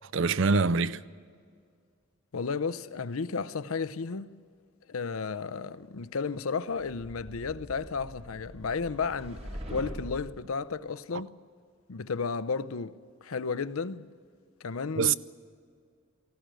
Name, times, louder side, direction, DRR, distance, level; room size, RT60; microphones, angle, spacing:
voice 1, 0.1-1.0 11.1-11.2 15.0-15.1, right 4 dB, 60° right, 0.5 m, -24 dB
voice 2, 2.3-4.3 4.9-11.3 11.9-14.1 14.6-15.1, left 5 dB, 90° left, 0.6 m, -33 dB
sound 1, 6.8-10.5, equal, 30° right, 1.4 m, -43 dB
19.0 x 15.5 x 9.0 m
head